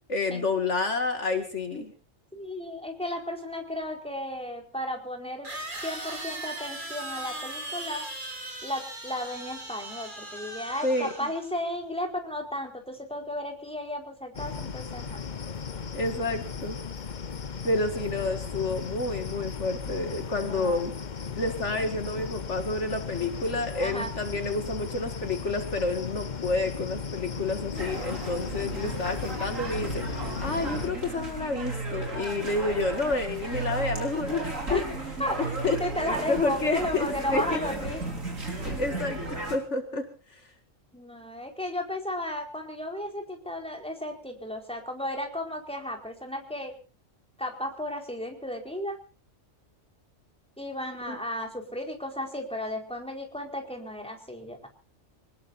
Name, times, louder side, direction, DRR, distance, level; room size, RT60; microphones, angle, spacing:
voice 1, 0.1-1.9 10.8-11.1 15.9-16.8 17.6-21.0 21.3-34.8 35.4-35.8 36.3-37.6 38.6-40.4 51.1-51.2, left 3 dB, 60° left, 6 dB, 2.4 m, -29 dB
voice 2, 2.3-5.5 5.8-8.0 8.6-15.2 20.4-20.8 23.8-24.1 34.7-34.9 35.2-35.5 35.8-38.0 40.9-46.7 47.4-49.0 50.6-54.7, left 1 dB, 5° left, 2 dB, 4.6 m, -34 dB
sound 1, 3.8-3.9 5.4-11.6, right 2 dB, 40° right, 3.3 m, -38 dB
sound 2, 14.3-30.9, left 6 dB, 40° left, 1.0 m, -36 dB
sound 3, 27.7-39.6, right 2 dB, 80° right, 5.3 m, -34 dB
26.0 x 20.0 x 2.7 m, 0.36 s
omnidirectional pair, 1.3 m